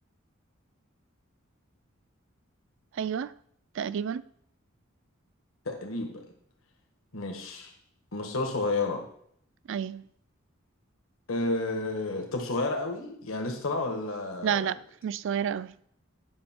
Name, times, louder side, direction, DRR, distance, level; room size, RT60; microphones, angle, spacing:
voice 1, 2.9-3.3 3.8-4.2 9.7-10.0 14.4-14.8 15.0-15.7, right 8 dB, 65° right, 0.3 m, -30 dB
voice 2, 5.6-6.2 7.1-7.7 8.1-9.0 11.3-14.6, left 2 dB, 85° left, 1.3 m, -31 dB
9.6 x 6.3 x 4.4 m
head